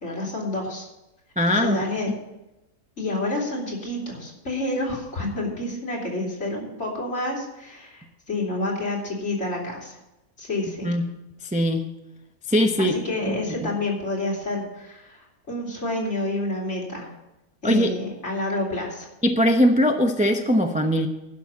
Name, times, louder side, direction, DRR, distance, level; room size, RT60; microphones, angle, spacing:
voice 1, 0.0-0.9 1.5-2.1 3.0-10.0 10.4-10.9 12.8-17.1 17.6-19.1, left 2 dB, 50° left, -3 dB, 3.3 m, -29 dB
voice 2, 1.4-1.8 10.8-11.0 11.5-11.9 12.5-13.0 13.2-13.7 17.6-18.0 19.2-21.1, equal, 10° right, 4 dB, 0.4 m, -21 dB
11.5 x 6.2 x 8.5 m, 0.96 s
omnidirectional pair, 1.6 m